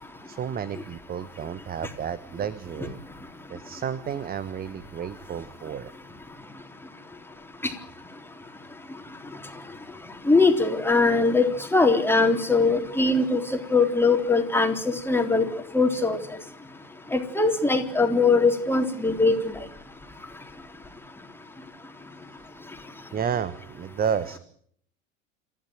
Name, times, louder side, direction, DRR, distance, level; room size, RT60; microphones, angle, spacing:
voice 1, 0.2-3.0 3.5-5.9 23.1-24.4, right 8 dB, 25° right, 17 dB, 1.2 m, -31 dB
voice 2, 10.3-11.5 11.7-13.4 13.7-14.7 15.1-15.4 15.7-16.2 17.1-19.5, left 3 dB, 5° left, 5 dB, 3.7 m, -21 dB
28.0 x 15.5 x 9.2 m, 0.63 s
figure-of-eight pair, 80°, 39 cm